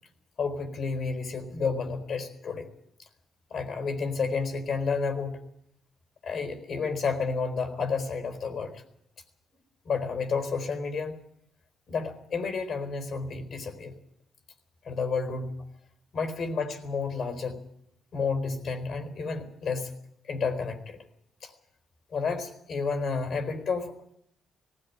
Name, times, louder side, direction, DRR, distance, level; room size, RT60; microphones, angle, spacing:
voice 1, 0.4-2.7 3.5-5.4 6.2-8.8 9.8-11.2 11.9-13.9 14.8-15.6 16.1-17.6 18.1-19.9 20.3-21.0 21.4-21.5 22.1-24.2, left 4 dB, 55° left, 8 dB, 4.1 m, -31 dB
18.5 x 16.0 x 9.8 m, 0.74 s
cardioid pair, 90°, 0 cm